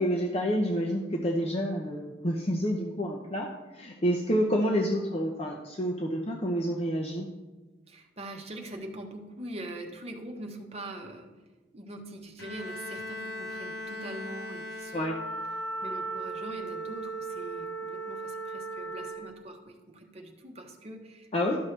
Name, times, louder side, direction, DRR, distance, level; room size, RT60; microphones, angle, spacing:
voice 1, 0.0-3.5 3.7-7.3 14.9-15.2 21.3-21.6, equal, 35° left, 0 dB, 0.7 m, -28 dB
voice 2, 7.9-11.3 11.7-15.2 15.8-21.3, right 1 dB, 35° right, 2 dB, 1.1 m, -43 dB
Bowed string instrument, 12.4-15.6, left 1 dB, 85° left, 0.9 m, -39 dB
Wind instrument woodwind instrument, 15.0-19.3, right 3 dB, 70° left, 1.6 m, -36 dB
12.5 x 6.4 x 3.3 m, 1.2 s
head